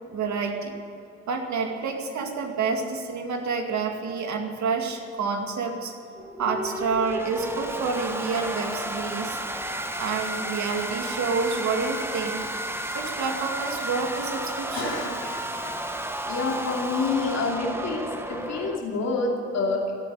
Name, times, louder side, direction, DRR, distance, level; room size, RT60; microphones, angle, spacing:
voice 1, 0.1-0.7 1.3-5.9 6.4-9.4 10.0-12.4 12.9-15.0, right 4 dB, 70° right, 3 dB, 2.3 m, -28 dB
sound 1, 6.2-18.8, right 1 dB, 10° right, 1.2 m, -32 dB
voice 2, 14.7-15.8 16.3-18.0 18.3-19.9, left 3 dB, 60° left, -2 dB, 2.8 m, -28 dB
14.5 x 8.7 x 9.9 m, 2.8 s
cardioid pair, 90°, 30 cm